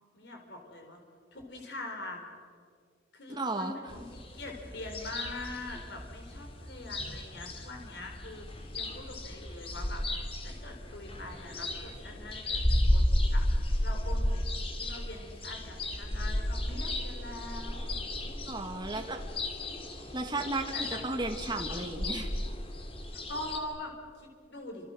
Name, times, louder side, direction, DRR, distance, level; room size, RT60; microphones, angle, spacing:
voice 1, 0.1-1.0 1.3-2.2 3.1-4.0 4.3-10.0 10.4-13.5 13.8-19.0 20.7-21.0 23.1-24.9, left 2 dB, 60° left, 2 dB, 4.3 m, -43 dB
voice 2, 3.3-3.7 18.5-19.2 20.1-22.4, right 2 dB, 25° right, 3 dB, 2.2 m, -34 dB
sound 1, 3.9-23.6, left 1 dB, 30° left, 2.8 m, -33 dB
29.5 x 27.5 x 6.5 m, 2.1 s
head